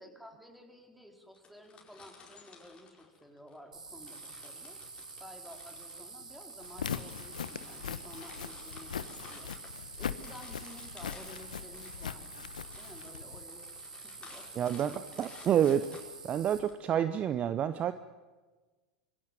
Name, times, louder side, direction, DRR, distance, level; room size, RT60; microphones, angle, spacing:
voice 1, 0.0-4.8 5.2-15.6 16.9-17.1, equal, ahead, 4 dB, 4.1 m, -53 dB
sound 1, 1.3-3.6 4.0-16.7, left 5 dB, 25° left, 5.1 m, -54 dB
sound 2, 3.7-16.6, right 4 dB, 85° right, 4.1 m, -48 dB
Walk footsteps, 6.6-13.4, left 8 dB, 75° left, 1.1 m, -41 dB
voice 2, 14.6-15.9 16.2-17.9, right 9 dB, 30° right, 13 dB, 0.8 m, -28 dB
25.5 x 22.0 x 7.8 m, 1.3 s
figure-of-eight pair, 90°, 4 cm